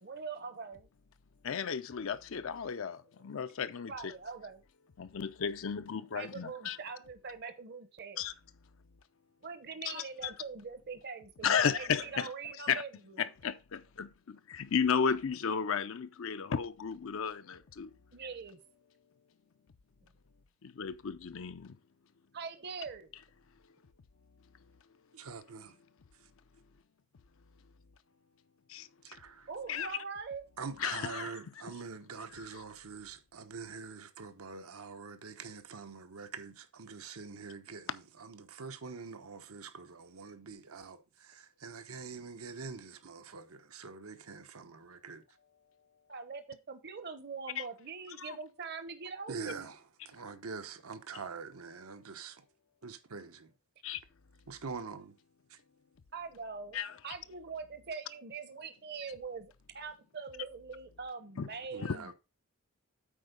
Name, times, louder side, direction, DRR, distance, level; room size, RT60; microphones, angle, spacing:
voice 1, 0.0-0.9 3.9-4.6 6.1-8.2 9.4-13.2 18.1-18.6 22.3-23.1 29.5-30.4 46.1-49.6 56.1-62.1, right 5 dB, 50° right, 0.8 m, -43 dB
voice 2, 1.4-4.1 5.0-6.8 8.2-8.3 9.8-10.3 11.4-12.3 12.7-12.8 13.2-17.9 20.6-21.8 28.7-28.9 29.7-29.9 30.8-31.3 47.6-47.7 48.2-48.4 53.8-54.0 56.7-57.0 61.4-61.5 61.8-62.0, left 6 dB, 65° left, 0.5 m, -34 dB
voice 3, 25.1-25.8 26.1-26.3 29.0-29.5 30.6-45.2 49.3-52.4 52.8-53.5 54.5-55.2 55.5-55.6 61.7-62.1, right 5 dB, 80° right, 1.0 m, -45 dB
8.6 x 4.4 x 5.1 m
head